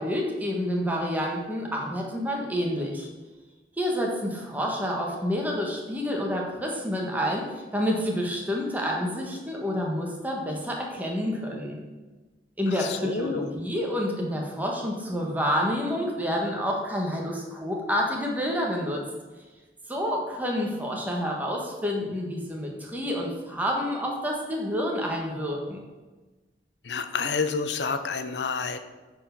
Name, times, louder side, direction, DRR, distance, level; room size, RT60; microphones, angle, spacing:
voice 1, 0.0-3.1 3.8-7.4 7.7-11.8 12.6-19.0 19.9-25.8, equal, 10° right, -1 dB, 1.4 m, -28 dB
voice 2, 12.7-13.5 26.8-28.8, left 5 dB, 80° left, 9 dB, 0.7 m, -29 dB
8.8 x 4.8 x 5.9 m, 1.2 s
head